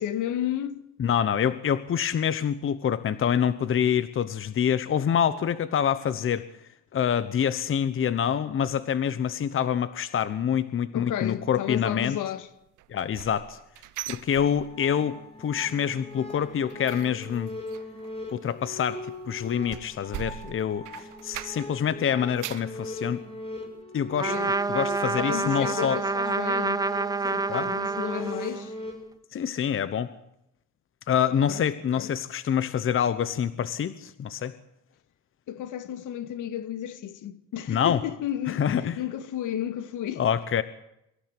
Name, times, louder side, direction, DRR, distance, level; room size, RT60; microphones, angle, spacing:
voice 1, 0.0-0.8 10.9-12.5 24.3-24.6 25.2-26.8 27.3-28.7 31.5-31.6 31.9-32.1 35.5-40.2, left 11 dB, 70° left, 2.0 m, -32 dB
voice 2, 1.0-6.5 6.9-12.2 12.9-13.6 14.1-17.5 18.3-23.2 23.9-24.4 24.7-26.0 27.2-27.7 29.3-30.1 31.1-34.5 37.7-38.0 38.5-39.0 40.2-40.6, left 8 dB, 40° left, 1.1 m, -26 dB
sound 1, 12.8-15.1 15.4-15.8 16.0-21.8 22.2-22.8 23.3-23.4 23.8-23.9, right 15 dB, 70° right, 1.0 m, -42 dB
sound 2, 14.6-28.9, left 1 dB, 20° left, 7.0 m, -40 dB
Trumpet, 24.2-28.7, right 3 dB, 10° right, 0.8 m, -28 dB
24.0 x 15.0 x 9.1 m
cardioid pair, 115°, 32 cm